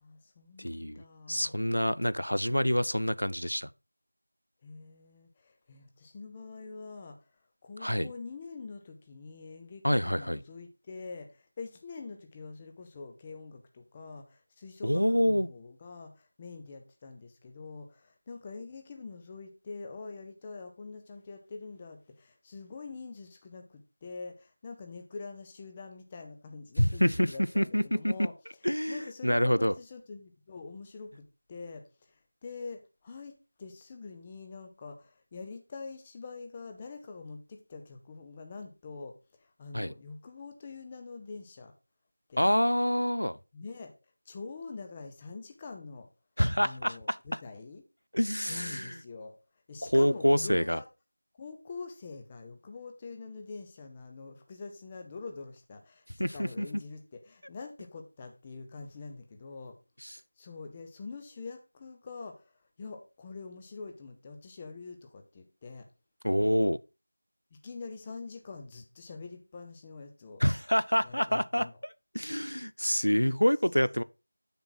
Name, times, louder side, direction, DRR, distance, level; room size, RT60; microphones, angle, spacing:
voice 1, 0.0-1.5 4.6-7.2 7.6-28.3 28.9-31.8 32.4-41.7 42.3-42.5 43.5-43.9 44.3-46.1 46.6-47.8 48.5-49.3 49.7-50.9 51.4-59.8 60.4-62.4 62.8-65.9 67.5-70.4 71.0-71.8, left 4 dB, 10° left, 0.6 m, -45 dB
voice 2, 0.6-3.7 7.8-8.1 9.8-10.4 14.8-15.5 26.8-28.3 28.6-29.7 39.7-39.9 42.4-43.4 46.4-47.4 48.1-49.0 49.8-50.8 56.2-56.7 60.0-60.2 66.2-66.8 70.4-71.7 72.1-74.0, equal, 80° left, 0.4 m, -27 dB
6.7 x 5.9 x 3.9 m
figure-of-eight pair, 170°, 0 cm